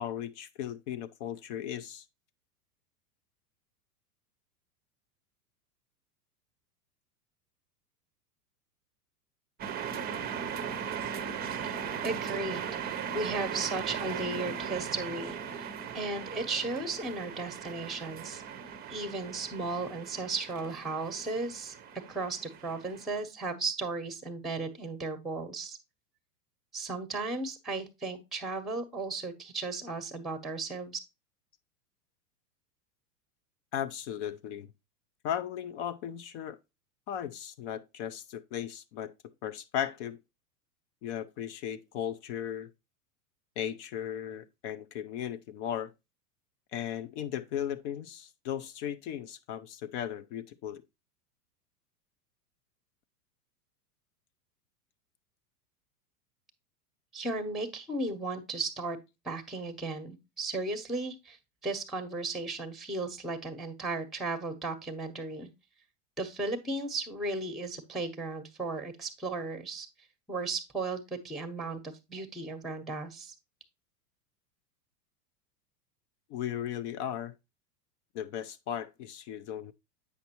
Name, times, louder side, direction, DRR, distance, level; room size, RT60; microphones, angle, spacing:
voice 1, 0.0-2.0 33.7-34.7 35.2-36.6 37.1-39.1 39.4-40.2 41.0-42.7 43.6-45.9 46.7-50.8 76.3-77.3 78.1-79.7, left 10 dB, 50° left, 0.6 m, -36 dB
sound 1, 9.6-23.1, right 7 dB, 20° right, 0.6 m, -38 dB
voice 2, 11.6-15.7 15.9-18.4 18.9-21.7 22.1-25.8 26.7-31.0 57.1-59.0 59.2-65.5 66.2-69.9 70.3-73.3, right 3 dB, ahead, 0.9 m, -35 dB
8.2 x 5.8 x 2.9 m
hypercardioid pair, 105°, 48 cm